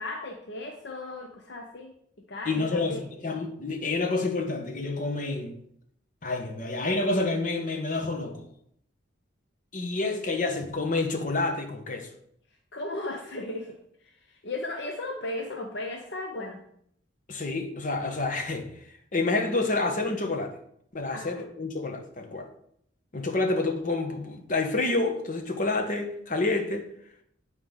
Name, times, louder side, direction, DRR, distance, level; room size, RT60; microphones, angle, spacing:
voice 1, 0.0-1.9 2.3-3.0 12.7-16.6 21.1-21.4, left 2 dB, 60° left, 0.8 m, -36 dB
voice 2, 2.5-5.6 6.2-8.5 9.7-12.1 17.3-18.7 19.1-20.6 20.9-22.5 23.1-26.9, left 3 dB, 45° left, 1.0 m, -28 dB
8.7 x 4.8 x 3.6 m
head